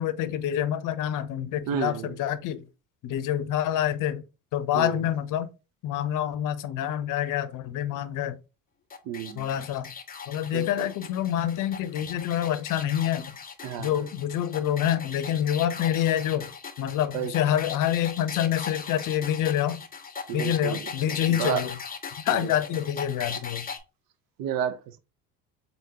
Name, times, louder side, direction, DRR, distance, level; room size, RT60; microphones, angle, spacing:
voice 1, 0.0-2.6 3.0-4.2 4.5-5.5 5.8-8.4 9.4-9.9 10.3-13.2 13.8-16.5 16.8-19.8 20.3-21.7 22.2-23.6, left 11 dB, 55° left, 0.7 m, -27 dB
voice 2, 1.7-2.2 4.7-5.1 9.1-9.5 10.5-10.9 13.6-14.0 17.1-17.3 20.3-21.7 22.3-22.5 24.4-25.0, right 9 dB, 60° right, 0.8 m, -31 dB
sound 1, 8.9-23.8, left 6 dB, 25° left, 0.8 m, -39 dB
4.0 x 3.6 x 2.8 m
supercardioid pair, 85°, 38 cm